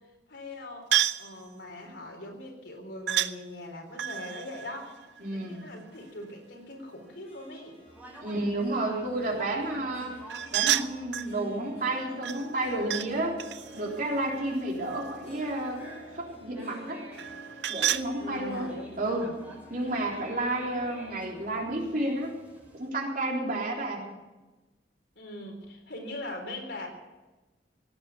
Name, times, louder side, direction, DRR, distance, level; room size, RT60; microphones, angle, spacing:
voice 1, 0.3-5.0 5.3-7.8 18.2-19.4 25.2-26.9, left 1 dB, 75° left, 2 dB, 3.9 m, -41 dB
sound 1, 0.9-1.3 3.1-3.3 3.9-5.8 10.3-11.3 12.2-13.1 13.4-15.3 17.1-18.1, right 11 dB, 70° right, 0.6 m, -30 dB
Harp, 4.4-22.9, equal, 35° left, 6.2 m, -50 dB
voice 2, 5.2-5.7 8.2-10.2 10.5-13.4 13.7-15.8 16.2-17.0 17.7-19.3 19.7-22.4 22.7-24.1, right 1 dB, 50° right, -1 dB, 3.7 m, -31 dB
Conversation, 7.9-22.9, right 1 dB, 10° right, 5.3 m, -50 dB
17.5 x 9.2 x 8.5 m, 1.2 s
head